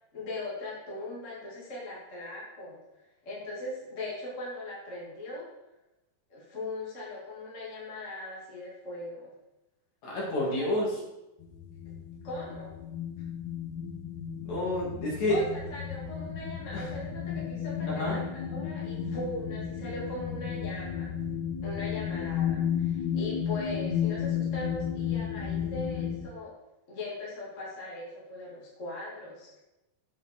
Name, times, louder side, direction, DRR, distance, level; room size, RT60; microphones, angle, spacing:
voice 1, 0.1-2.8 3.2-5.5 6.3-9.3 10.4-11.0 11.8-11.9 12.2-12.7 15.3-21.1 21.6-26.5 26.9-29.6, left 2 dB, 25° left, -5 dB, 1.8 m, -39 dB
voice 2, 10.0-10.9 14.4-15.3 16.7-16.8 17.9-18.2, left 1 dB, 50° left, -5 dB, 3.4 m, -29 dB
sound 1, 11.4-26.2, left 8 dB, 90° left, 1.6 m, -33 dB
7.5 x 7.1 x 4.4 m, 0.93 s
omnidirectional pair, 4.3 m